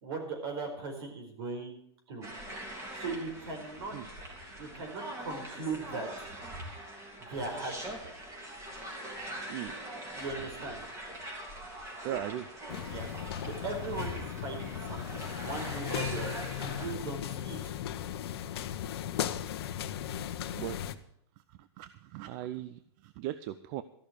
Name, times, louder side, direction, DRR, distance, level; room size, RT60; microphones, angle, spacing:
voice 1, 0.0-1.8 2.1-2.3 3.0-4.0 4.6-6.3 7.3-7.9 10.1-10.8 12.9-13.1 13.6-17.7, right 3 dB, 60° right, 4 dB, 4.6 m, -38 dB
sound 1, 2.2-16.9, right 1 dB, 20° right, 3.4 m, -43 dB
voice 2, 12.0-12.5 20.5-21.0 21.8-23.8, right 13 dB, 40° right, 14 dB, 0.6 m, -38 dB
sound 2, 12.7-20.9, left 10 dB, 65° left, 1.0 m, -37 dB
14.0 x 6.5 x 8.7 m, 0.70 s
hypercardioid pair, 140°, 14 cm